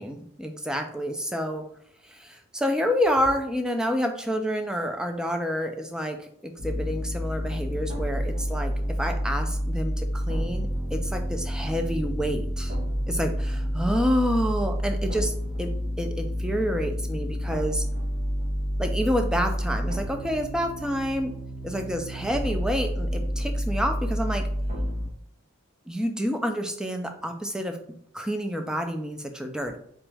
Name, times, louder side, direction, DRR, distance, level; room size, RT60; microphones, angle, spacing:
voice 1, 0.0-1.7 2.1-6.3 6.6-12.8 13.1-17.8 18.8-21.3 21.6-24.5 25.9-27.8 28.1-29.8, equal, 5° right, 5 dB, 0.3 m, -28 dB
sound 1, 6.6-25.1, equal, 35° right, 1.3 m, -29 dB
3.5 x 3.0 x 3.3 m, 0.66 s
head